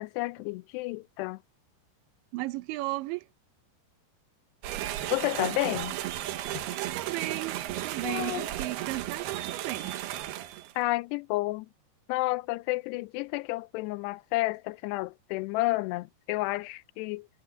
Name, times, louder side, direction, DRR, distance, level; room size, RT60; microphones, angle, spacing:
voice 1, 0.0-1.4 5.1-6.0 6.5-6.6 8.0-8.5 10.8-11.7 12.1-17.3, left 20 dB, 80° left, 2.6 m, -31 dB
voice 2, 2.3-3.3 6.8-7.6 7.8-9.9, right 19 dB, 85° right, 3.2 m, -34 dB
sound 1, 4.6-10.7, right 13 dB, 70° right, 2.9 m, -34 dB
omnidirectional pair, 5.1 m